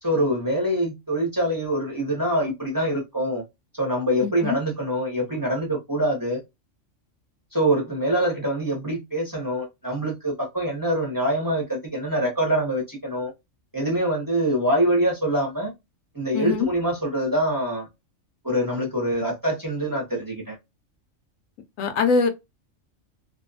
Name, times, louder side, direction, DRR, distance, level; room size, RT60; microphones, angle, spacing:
voice 1, 0.0-3.4 3.8-6.4 7.5-13.3 13.7-15.7 16.1-17.9 18.4-20.6, right 1 dB, 20° right, 0.7 m, -24 dB
voice 2, 4.2-4.6 16.3-16.7 21.8-22.3, left 5 dB, 85° left, 1.0 m, -22 dB
2.5 x 2.2 x 2.6 m
omnidirectional pair, 1.4 m